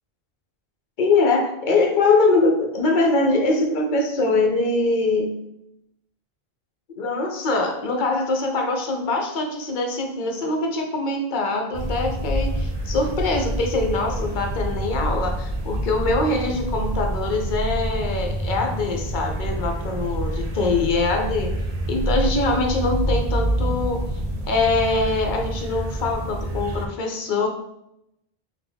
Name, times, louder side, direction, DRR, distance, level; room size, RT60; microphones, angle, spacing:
voice 1, 1.0-5.4 7.0-21.5 21.9-24.0 24.5-27.5, left 3 dB, 55° left, 2 dB, 0.7 m, -23 dB
sound 1, 11.7-26.9, right 1 dB, 50° right, 0.6 m, -27 dB
3.5 x 2.2 x 3.3 m, 0.81 s
omnidirectional pair, 1.0 m